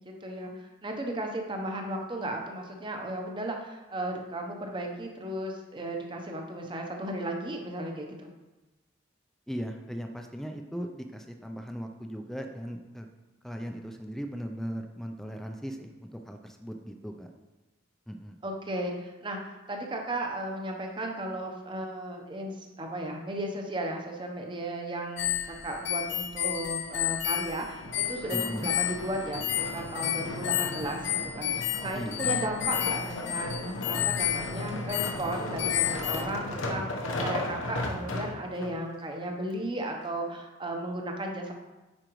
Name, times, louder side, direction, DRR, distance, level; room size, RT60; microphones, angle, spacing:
voice 1, 0.0-8.3 18.4-41.5, right 1 dB, 25° right, 2 dB, 0.8 m, -35 dB
voice 2, 9.5-13.1 13.4-17.3 18.1-18.4 28.3-28.7 31.9-32.3, equal, ahead, 4 dB, 0.4 m, -38 dB
sound 1, 25.2-36.2, left 12 dB, 65° left, 0.5 m, -31 dB
sound 2, 27.7-38.7 39.4-39.5, left 1 dB, 85° left, 1.0 m, -36 dB
9.7 x 4.9 x 3.1 m, 1.1 s
head